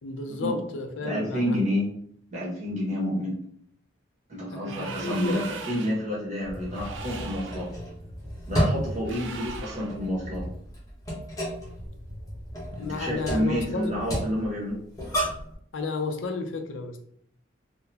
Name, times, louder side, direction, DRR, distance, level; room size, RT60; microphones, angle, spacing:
voice 1, 0.0-1.6 4.5-5.4 12.8-14.0 15.7-17.0, left 3 dB, 80° left, 5 dB, 0.5 m, -32 dB
voice 2, 1.0-1.9 2.3-3.3 4.3-7.7 8.5-10.5 12.8-14.8, equal, 40° right, -5 dB, 1.2 m, -29 dB
sound 1, 4.6-6.1 6.7-7.7 9.0-10.0, right 4 dB, 80° right, 0.5 m, -39 dB
sound 2, 6.4-15.5, equal, 20° left, 0.9 m, -33 dB
3.8 x 2.1 x 2.8 m, 0.67 s
head